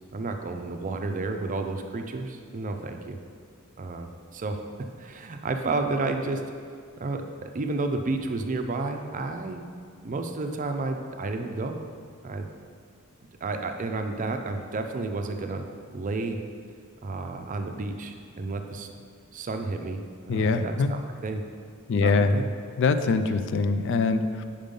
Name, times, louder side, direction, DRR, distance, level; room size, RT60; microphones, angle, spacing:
voice 1, 0.1-3.2 3.8-4.6 5.0-6.4 7.0-9.6 10.0-11.8 12.2-12.5 13.4-15.6 15.9-16.4 17.0-18.9 19.3-21.4 22.0-22.5, right 3 dB, 35° right, 5 dB, 0.5 m, -31 dB
voice 2, 20.3-20.9 21.9-22.4 22.8-24.4, left 4 dB, 60° left, 10 dB, 0.3 m, -23 dB
5.3 x 5.2 x 5.3 m, 2.1 s
head